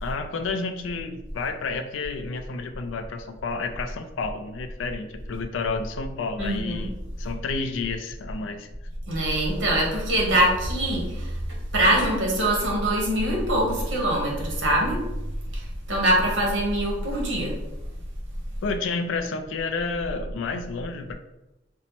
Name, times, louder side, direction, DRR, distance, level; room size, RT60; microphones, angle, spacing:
voice 1, 0.0-8.7 18.6-21.1, left 4 dB, 80° left, 8 dB, 0.3 m, -30 dB
voice 2, 6.4-6.8 9.1-11.4 11.7-15.0 15.5-17.5, right 1 dB, 70° right, -2 dB, 1.0 m, -23 dB
4.3 x 2.0 x 2.8 m, 0.96 s
head